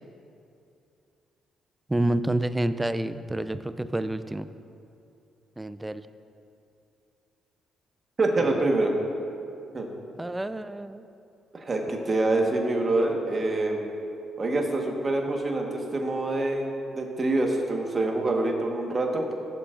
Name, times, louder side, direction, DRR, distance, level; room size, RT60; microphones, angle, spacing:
voice 1, 1.9-4.5 5.6-6.0 10.2-11.0, right 1 dB, 10° right, 12 dB, 0.4 m, -28 dB
voice 2, 8.2-8.9 9.7-9.9 11.5-13.9 14.4-19.3, right 2 dB, 35° right, 1 dB, 1.3 m, -26 dB
16.0 x 7.2 x 2.5 m, 2.6 s
cardioid pair, 90°, 0 cm